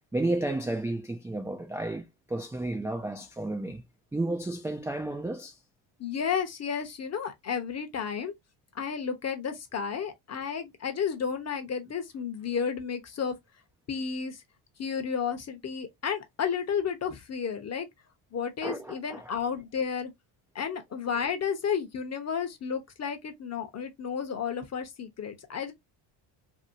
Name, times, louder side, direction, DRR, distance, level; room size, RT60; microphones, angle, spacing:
voice 1, 0.1-3.8 4.1-5.6 18.6-19.4, right 2 dB, 5° right, 0.3 m, -32 dB
voice 2, 6.0-8.3 8.7-13.3 13.9-14.4 14.8-17.9 18.3-20.1 20.5-25.7, left 7 dB, 35° left, 0.8 m, -32 dB
2.8 x 2.8 x 2.6 m
cardioid pair, 115°, 48 cm